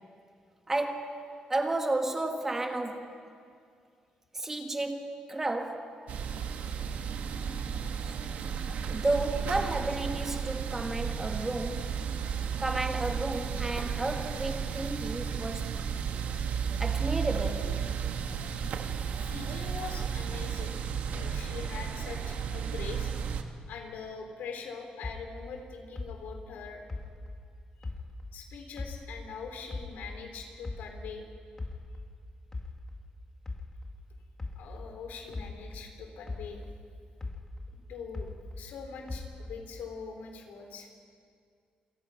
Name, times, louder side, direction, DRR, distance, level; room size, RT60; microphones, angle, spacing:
voice 1, 0.7-3.2 4.3-6.0 8.0-8.1 8.9-12.0 12.6-15.8 16.8-17.9, right 2 dB, 15° right, 1.7 m, -32 dB
sound 1, 6.1-23.4, right 7 dB, 60° right, 1.6 m, -33 dB
voice 2, 19.2-20.8 21.1-23.1 23.7-26.8 28.3-31.2 34.6-36.6 37.9-41.0, left 5 dB, 85° left, 4.0 m, -43 dB
sound 2, 25.0-28.4 28.8-31.2 31.6-35.9 36.3-38.7 39.1-39.8, left 3 dB, 15° left, 1.8 m, -40 dB
27.5 x 27.0 x 5.9 m
cardioid pair, 170°, 3 cm